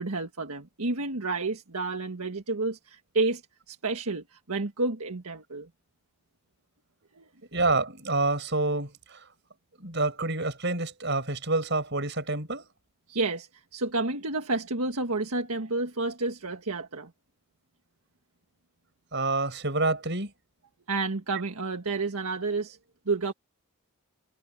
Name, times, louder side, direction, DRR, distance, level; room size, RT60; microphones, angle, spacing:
voice 1, 0.0-3.4 3.7-5.7 7.2-7.3 13.1-17.1 20.9-22.8 23.0-23.3, right 3 dB, 85° right, 1.6 m, -30 dB
voice 2, 7.5-9.2 9.8-12.7 19.1-20.3, right 3 dB, 50° right, 6.8 m, -28 dB
head